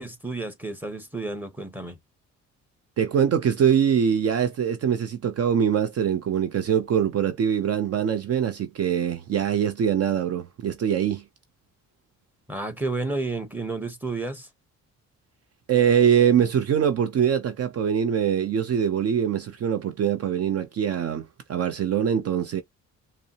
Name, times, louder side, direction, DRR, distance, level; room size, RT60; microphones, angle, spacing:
voice 1, 0.0-2.0 12.5-14.5, right 3 dB, 5° right, 1.0 m, -31 dB
voice 2, 3.0-11.2 15.7-22.6, right 8 dB, 55° right, 0.6 m, -23 dB
5.2 x 2.0 x 2.8 m
cardioid pair, 90°, 30 cm